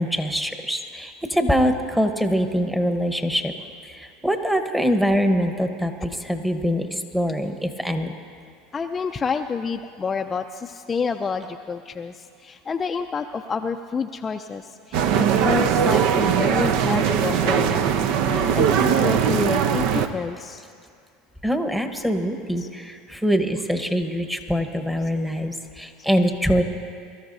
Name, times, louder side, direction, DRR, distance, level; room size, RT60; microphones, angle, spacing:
voice 1, 0.0-3.5 3.8-8.1 21.4-26.6, equal, 5° right, 6 dB, 1.1 m, -23 dB
voice 2, 8.7-17.9 18.2-20.6 22.6-22.7, left 5 dB, 25° left, 5 dB, 0.4 m, -29 dB
sound 1, 14.9-20.1, right 8 dB, 65° right, 0.7 m, -20 dB
22.5 x 13.0 x 2.7 m, 2.2 s
hypercardioid pair, 95°, 0 cm